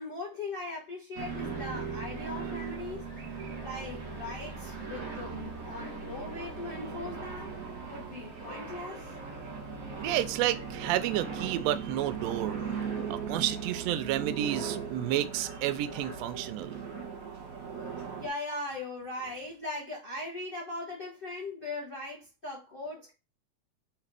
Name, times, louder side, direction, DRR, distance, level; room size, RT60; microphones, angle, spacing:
voice 1, 0.0-3.0 3.6-7.5 7.9-9.1 18.1-23.1, left 2 dB, 35° left, 0.9 m, -39 dB
sound 1, 1.2-18.3, right 5 dB, 45° right, 1.1 m, -38 dB
voice 2, 10.0-12.6 13.1-16.8, right 13 dB, 85° right, 1.5 m, -31 dB
4.9 x 3.0 x 3.3 m
omnidirectional pair, 3.4 m